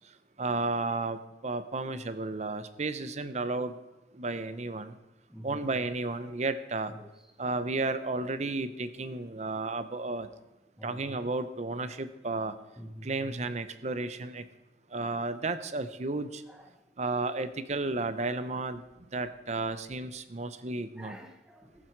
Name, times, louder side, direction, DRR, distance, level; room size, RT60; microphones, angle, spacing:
voice 1, 0.4-3.8 4.1-4.9 5.4-6.9 7.4-10.3 10.8-12.5 13.0-14.4 14.9-16.4 17.0-18.8 19.1-21.2, right 3 dB, 40° right, 0.7 m, -33 dB
voice 2, 5.3-5.7 6.9-7.2 10.8-11.1 12.8-13.1 16.5-16.8 21.0-21.9, equal, 5° right, 0.9 m, -48 dB
18.5 x 7.5 x 4.6 m
head